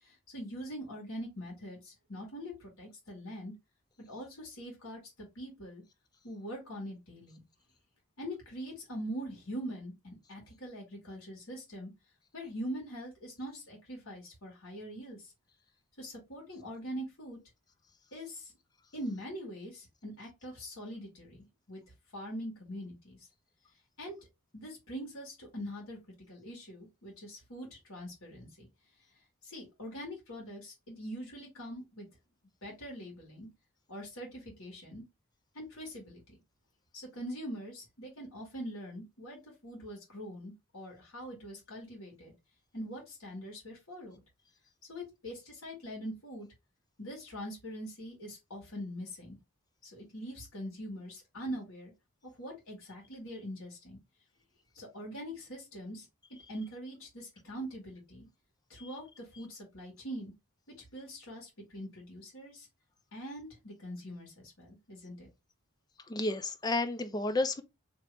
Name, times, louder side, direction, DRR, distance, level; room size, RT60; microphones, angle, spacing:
voice 1, 0.0-3.5 4.1-5.8 6.2-7.4 8.2-11.9 12.3-15.3 16.0-17.4 18.1-18.5 18.9-21.8 22.1-23.2 24.0-24.2 24.5-26.0 26.3-28.7 29.4-32.1 32.6-33.5 33.9-35.0 35.5-36.4 36.9-42.3 42.7-44.2 44.9-46.5 47.0-49.4 49.8-51.9 52.2-54.0 54.7-56.1 56.5-58.3 58.7-60.3 60.9-62.7 63.1-65.3, equal, 70° left, 1.8 m, -43 dB
voice 2, 66.1-67.6, left 2 dB, 20° left, 0.3 m, -31 dB
2.9 x 2.8 x 3.3 m
head